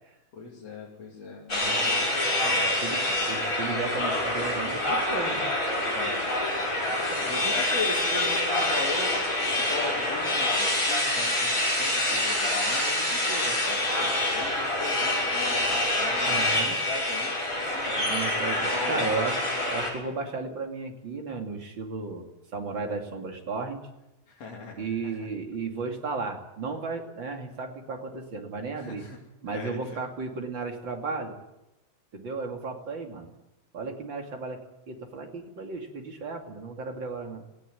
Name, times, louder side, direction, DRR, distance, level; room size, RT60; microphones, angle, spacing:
voice 1, 0.3-2.2 5.9-6.3 6.9-9.1 9.6-19.2 24.3-25.1 28.8-29.2 29.5-29.8, left 4 dB, 55° left, -3 dB, 4.0 m, -39 dB
sound 1, 1.5-19.9, left 1 dB, 25° left, 7.2 m, -26 dB
voice 2, 1.6-5.4 16.2-16.8 18.1-19.4 19.7-22.2 22.5-23.8 24.8-29.0 29.4-31.4 32.1-33.3 33.7-34.6 34.9-37.4, right 4 dB, 40° right, 3 dB, 3.1 m, -34 dB
19.5 x 16.0 x 9.7 m, 0.94 s
omnidirectional pair, 3.4 m